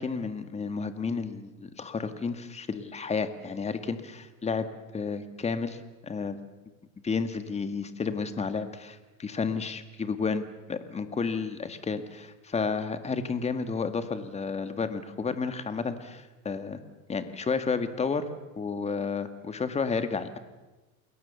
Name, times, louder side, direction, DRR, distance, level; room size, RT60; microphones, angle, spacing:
voice 1, 0.0-4.7 4.9-5.8 6.0-6.4 7.0-16.8 17.1-18.3 18.6-20.4, left 5 dB, 15° left, 9 dB, 1.9 m, -31 dB
29.0 x 21.5 x 7.0 m, 1.1 s
supercardioid pair, 135°, 43 cm